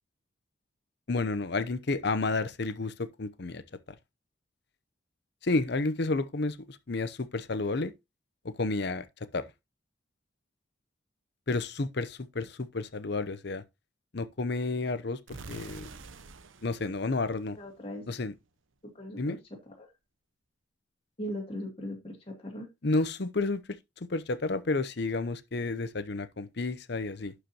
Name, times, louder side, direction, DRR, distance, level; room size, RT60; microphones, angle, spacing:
voice 1, 1.1-3.6 5.4-7.9 8.6-9.0 9.3-9.5 11.5-13.6 14.1-15.2 15.5-15.9 16.6-17.6 18.1-18.3 19.2-19.4 22.8-23.6 24.0-27.3, left 3 dB, 55° left, 0.7 m, -31 dB
sound 1, 15.3-18.1, right 4 dB, 80° right, 0.8 m, -48 dB
voice 2, 17.6-18.1 18.9-19.4 19.8-19.9 21.2-22.7, equal, 30° left, 2.5 m, -39 dB
11.5 x 5.0 x 2.9 m
head